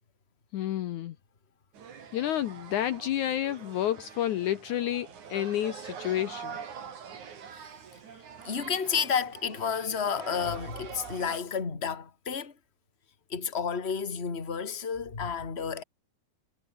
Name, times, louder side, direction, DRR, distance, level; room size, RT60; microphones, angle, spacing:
voice 1, 0.5-1.2 2.1-6.6, left 12 dB, 70° left, 2.2 m, -30 dB
sound 1, 1.7-11.4, right 7 dB, 60° right, 4.3 m, -44 dB
voice 2, 8.4-12.5 13.3-15.8, left 6 dB, 20° left, 2.3 m, -31 dB
omnidirectional pair, 4.0 m